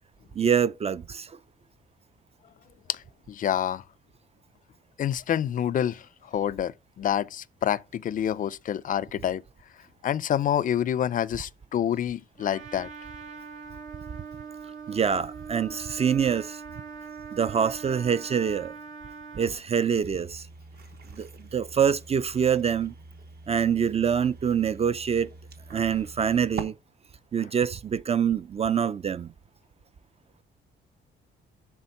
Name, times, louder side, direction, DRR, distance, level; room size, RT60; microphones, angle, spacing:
voice 1, 0.4-1.3 14.9-16.6 17.3-18.7 19.3-20.4 21.2-22.9 23.5-25.3 25.7-26.7 27.3-29.3, right 7 dB, 30° right, 0.4 m, -25 dB
voice 2, 2.9-3.8 5.0-9.4 10.0-12.9, left 10 dB, 45° left, 0.4 m, -28 dB
Trumpet, 12.4-19.5, right 6 dB, 90° right, 2.1 m, -42 dB
sound 1, 20.0-26.6, right 4 dB, 55° right, 1.1 m, -44 dB
7.0 x 3.5 x 5.8 m
cardioid pair, 90°, 20 cm